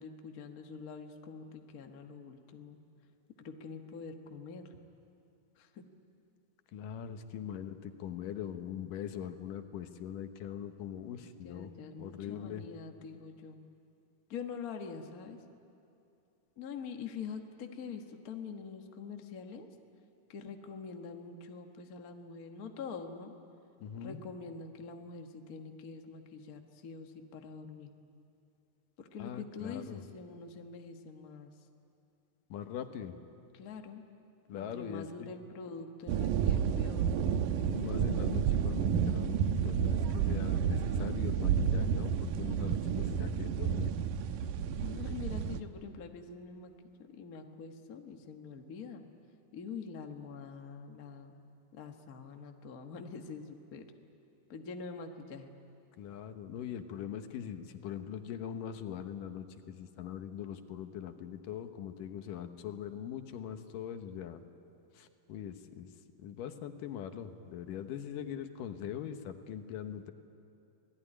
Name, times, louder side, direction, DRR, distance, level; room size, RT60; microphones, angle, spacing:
voice 1, 0.0-2.8 3.4-4.8 5.6-5.8 11.4-13.6 14.3-15.4 16.6-19.7 20.3-23.3 24.0-27.9 29.0-31.5 33.5-34.0 34.5-37.1 44.8-49.0 49.5-51.3 51.7-53.9 54.5-55.5, left 5 dB, 50° left, 4 dB, 1.1 m, -45 dB
voice 2, 6.7-11.7 12.0-12.6 23.8-24.2 29.2-30.0 32.5-33.2 34.5-35.3 37.5-43.9 56.0-64.4 64.9-65.9 66.2-70.1, left 9 dB, 80° left, 8 dB, 2.7 m, -42 dB
sound 1, 36.1-45.6, right 8 dB, 80° right, 2.4 m, -30 dB
26.5 x 18.5 x 10.0 m, 2.7 s
omnidirectional pair, 3.9 m